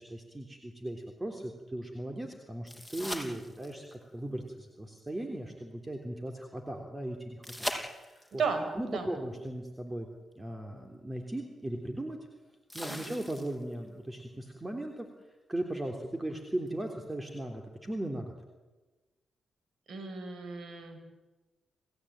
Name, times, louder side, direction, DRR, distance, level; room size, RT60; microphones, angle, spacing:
voice 1, 0.0-8.4 8.8-10.1 10.4-12.2 12.7-15.1 15.5-18.3, right 1 dB, 20° right, 3 dB, 3.5 m, -38 dB
sound 1, 2.7-3.9 7.4-8.4 10.3-10.4 12.7-13.7 16.7-16.8, left 1 dB, ahead, 5.4 m, -39 dB
voice 2, 8.3-9.1 12.9-13.1 19.9-21.0, right 5 dB, 60° right, 7 dB, 5.3 m, -35 dB
28.5 x 16.0 x 9.0 m, 1.2 s
hypercardioid pair, 40°, 0 cm